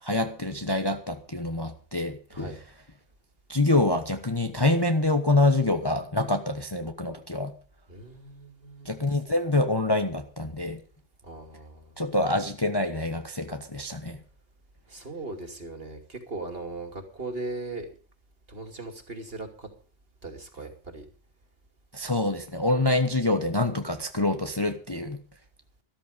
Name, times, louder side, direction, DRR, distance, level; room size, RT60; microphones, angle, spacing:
voice 1, 0.0-2.5 3.5-7.5 8.8-10.8 12.0-14.2 21.9-25.2, left 2 dB, 20° left, 1.1 m, -26 dB
voice 2, 7.9-9.2 11.2-12.0 14.9-17.9 18.5-19.7 20.2-21.1, right 2 dB, 45° right, 2.9 m, -38 dB
14.0 x 13.5 x 5.2 m
omnidirectional pair, 1.4 m